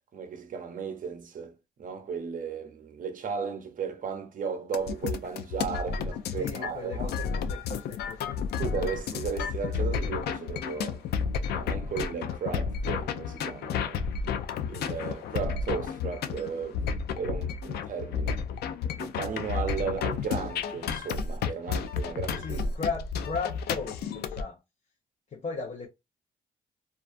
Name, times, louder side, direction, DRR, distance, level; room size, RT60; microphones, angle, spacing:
voice 1, 0.1-7.1 8.6-11.0 11.5-14.1 14.7-16.8 17.1-18.4 19.0-22.6, right 6 dB, 55° right, 0.6 m, -35 dB
sound 1, 4.7-24.4, left 6 dB, 80° left, 0.4 m, -32 dB
voice 2, 6.3-8.4 22.3-24.6 25.3-25.9, left 4 dB, 45° left, 0.7 m, -36 dB
2.4 x 2.3 x 2.5 m
cardioid pair, 80°, 16 cm